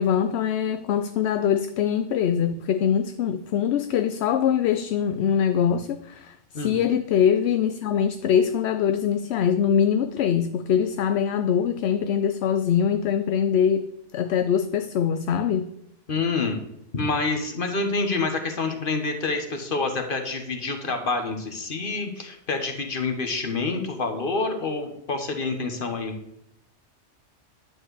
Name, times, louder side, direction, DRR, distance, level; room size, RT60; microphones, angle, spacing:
voice 1, 0.0-13.9 14.1-15.7, left 8 dB, 65° left, 10 dB, 0.8 m, -23 dB
voice 2, 16.1-16.6 16.9-26.1, left 3 dB, 45° left, 5 dB, 1.5 m, -27 dB
11.0 x 4.7 x 8.1 m, 0.80 s
omnidirectional pair, 1.2 m